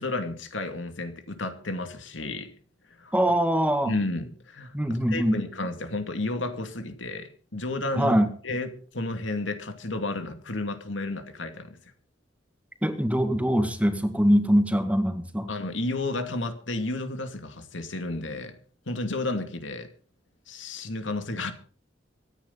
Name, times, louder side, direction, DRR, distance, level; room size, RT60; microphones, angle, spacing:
voice 1, 0.0-2.5 2.9-3.1 3.8-4.7 5.1-8.2 8.4-11.8 15.5-18.6 18.9-19.9 20.5-21.5, left 2 dB, 90° left, 2.5 m, -32 dB
voice 2, 3.1-3.9 4.7-5.4 7.9-8.3 12.8-15.5, equal, 10° right, 1.9 m, -23 dB
24.5 x 9.8 x 4.1 m
head